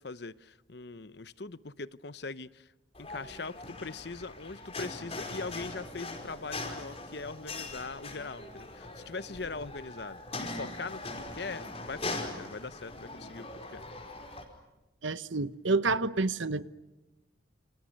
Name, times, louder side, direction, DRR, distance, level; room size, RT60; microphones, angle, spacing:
voice 1, 0.0-2.7 3.0-11.0 11.3-13.8, left 4 dB, 55° left, 0.8 m, -41 dB
sound 1, 2.9-14.4, left 2 dB, 30° left, 4.9 m, -41 dB
voice 2, 15.0-16.6, right 3 dB, 75° right, 1.1 m, -29 dB
29.5 x 29.0 x 6.5 m
head